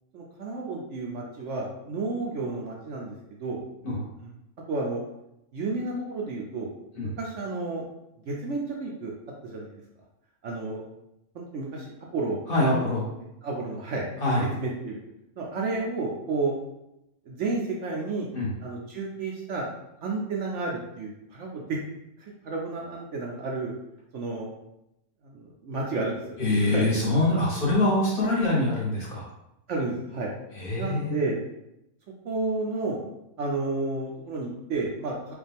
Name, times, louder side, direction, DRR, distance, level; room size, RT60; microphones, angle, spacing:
voice 1, 0.1-3.1 3.4-3.6 4.7-5.0 5.5-6.7 7.2-7.9 8.3-9.1 9.4-9.8 10.4-10.8 11.3-12.4 12.7-12.9 13.4-14.1 14.5-15.0 15.4-16.5 17.3-18.3 18.6-19.7 20.0-21.6 22.2-23.7 24.1-24.5 25.2-26.9 29.7-30.3 30.7-31.4 32.2-33.0 33.4-35.3, right 3 dB, 65° right, -2 dB, 0.8 m, -31 dB
voice 2, 12.5-13.1 14.2-14.5 18.3-18.5 26.4-29.3 30.5-31.2, left 2 dB, 40° left, -5 dB, 1.0 m, -24 dB
4.9 x 2.3 x 3.4 m, 0.86 s
omnidirectional pair, 1.6 m